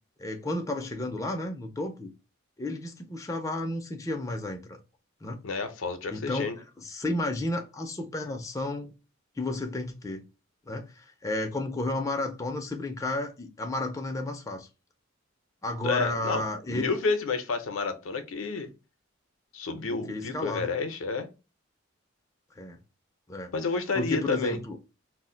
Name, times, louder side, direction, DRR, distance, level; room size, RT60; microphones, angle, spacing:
voice 1, 0.2-2.1 2.6-4.8 5.2-5.4 6.1-8.9 9.4-10.2 10.7-14.7 15.6-16.9 19.8-20.7 22.6-22.8 23.3-23.5 23.9-24.8, left 2 dB, 15° left, 0.3 m, -32 dB
voice 2, 5.4-6.6 15.8-18.7 19.5-21.3 23.5-24.6, left 4 dB, 80° left, 0.5 m, -30 dB
2.4 x 2.0 x 3.7 m
head